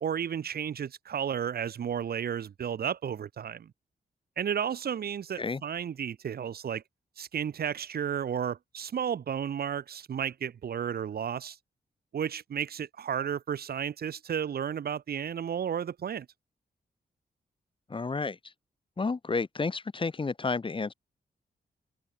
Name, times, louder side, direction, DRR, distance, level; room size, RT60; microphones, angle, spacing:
voice 1, 0.0-3.7 4.4-6.8 7.2-11.6 12.1-16.3, right 8 dB, 65° right, 1.1 m, -33 dB
voice 2, 17.9-18.4 19.0-20.9, left 4 dB, 30° left, 1.7 m, -31 dB
wide cardioid pair, 115°, 17 cm